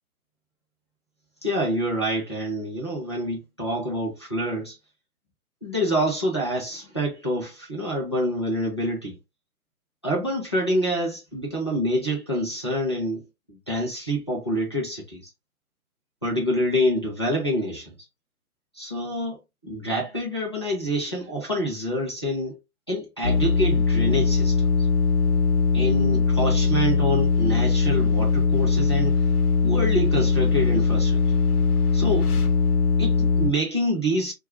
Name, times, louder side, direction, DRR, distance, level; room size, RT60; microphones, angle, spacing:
voice 1, 1.4-4.7 5.6-9.2 10.0-13.2 13.5-15.2 16.2-17.9 18.8-19.4 19.6-22.6 22.9-24.7 25.7-29.2 29.6-31.2 31.9-32.3 33.0-34.3, equal, 20° left, 0.5 m, -26 dB
sound 1, 23.2-33.5, left 5 dB, 85° left, 0.8 m, -21 dB
2.5 x 2.3 x 2.7 m
figure-of-eight pair, 150°, 44 cm